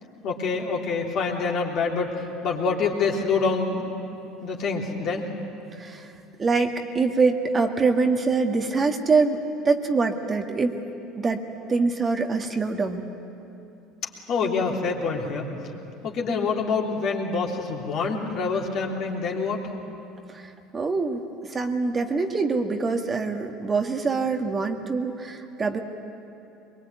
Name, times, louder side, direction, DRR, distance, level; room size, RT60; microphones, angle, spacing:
voice 1, 0.2-3.9 4.4-5.3 14.3-15.5 16.0-19.7, left 4 dB, 55° left, -1 dB, 3.4 m, -26 dB
voice 2, 5.7-6.1 6.4-10.7 11.2-11.4 11.7-13.1 20.3-25.8, right 4 dB, 30° right, 4 dB, 1.9 m, -24 dB
23.0 x 22.5 x 9.3 m, 2.8 s
hypercardioid pair, 70°, 0 cm